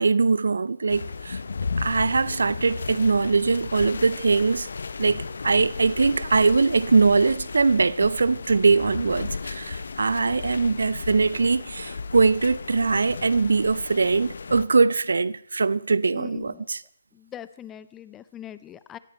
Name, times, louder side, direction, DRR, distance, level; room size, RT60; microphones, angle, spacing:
voice 1, 0.0-1.4 1.8-4.7 5.0-16.8, right 4 dB, 65° right, 0.5 m, -22 dB
sound 1, 0.9-14.7, left 4 dB, 60° left, 0.8 m, -35 dB
voice 2, 16.1-16.7 17.1-19.0, left 11 dB, 15° left, 0.6 m, -42 dB
18.0 x 14.0 x 4.4 m
figure-of-eight pair, 140°, 0 cm